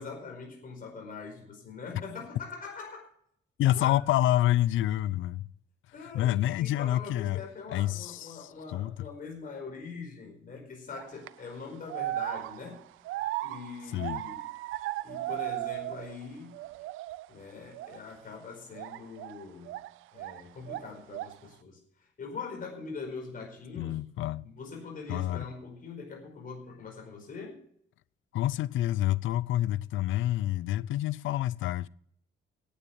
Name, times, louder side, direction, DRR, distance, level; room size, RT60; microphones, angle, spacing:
voice 1, 0.0-3.1 3.7-4.0 5.9-12.8 13.4-14.4 15.0-16.6 17.3-19.8 20.1-24.0 24.4-27.6, left 4 dB, 45° left, 4.8 m, -43 dB
voice 2, 3.6-5.4 6.1-7.4 7.7-8.9 13.9-14.2 23.8-24.4 25.1-25.4 28.3-31.9, left 14 dB, 80° left, 0.5 m, -28 dB
sound 1, 11.0-11.3 11.9-16.3 16.5-17.3 17.7-18.0 18.7-20.4 20.7-21.5, right 16 dB, 90° right, 0.5 m, -36 dB
10.0 x 9.3 x 8.3 m
cardioid pair, 90°, 20 cm